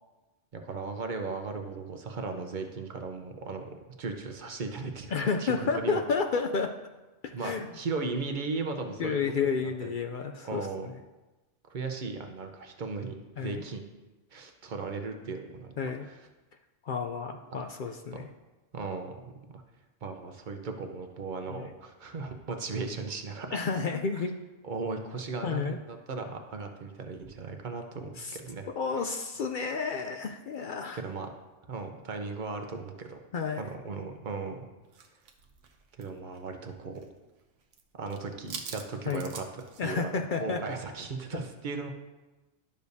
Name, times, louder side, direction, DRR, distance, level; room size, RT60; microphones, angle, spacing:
voice 1, 0.5-5.1 5.4-6.0 7.3-9.2 9.8-9.9 10.4-10.9 11.7-13.8 14.3-15.7 16.0-16.2 17.5-17.6 18.1-18.2 18.7-19.2 19.5-19.6 20.0-23.6 23.9-24.2 24.6-28.7 30.9-31.3 31.7-33.2 33.6-34.7 36.0-37.0 38.0-41.9, right 4 dB, 45° right, 4 dB, 0.9 m, -37 dB
voice 2, 5.1-6.7 7.2-7.7 9.0-10.9 13.4-13.6 15.8-16.0 16.9-18.3 21.5-21.7 23.5-24.3 25.4-25.8 28.2-28.4 28.8-31.0 33.3-33.6 39.1-39.2 39.8-40.6 41.3-41.4, left 5 dB, 60° left, 5 dB, 0.5 m, -31 dB
sound 1, 34.9-37.1 37.4-37.8 38.1-39.8, right 6 dB, 80° right, 1.1 m, -44 dB
11.5 x 6.8 x 2.7 m, 1.1 s
omnidirectional pair, 1.2 m